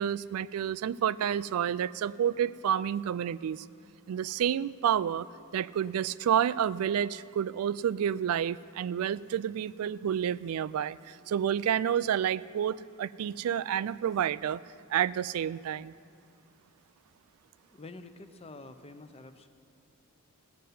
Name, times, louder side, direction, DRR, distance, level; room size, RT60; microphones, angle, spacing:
voice 1, 0.0-3.7 4.1-5.3 5.5-14.6 14.9-15.9, right 9 dB, 90° right, 17 dB, 0.3 m, -29 dB
voice 2, 17.7-19.5, left 2 dB, 30° left, 9 dB, 0.6 m, -48 dB
15.5 x 6.7 x 9.3 m, 2.3 s
head